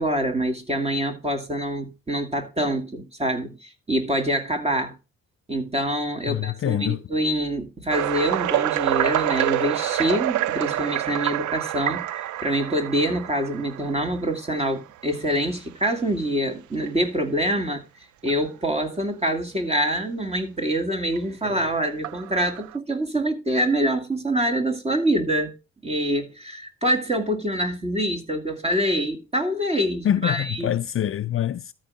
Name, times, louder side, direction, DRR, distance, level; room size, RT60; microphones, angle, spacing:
voice 1, 0.0-4.9 5.5-17.8 18.2-25.5 25.8-30.7, right 1 dB, 20° right, 2.3 m, -25 dB
voice 2, 6.3-7.0 30.0-31.7, left 11 dB, 45° left, 0.5 m, -25 dB
sound 1, 7.9-14.8 15.4-15.6 16.1-16.2 16.8-16.9 18.3-18.4 21.2-21.3 22.0-22.8, right 13 dB, 75° right, 0.6 m, -27 dB
13.5 x 4.7 x 5.4 m
cardioid pair, 90°, 30 cm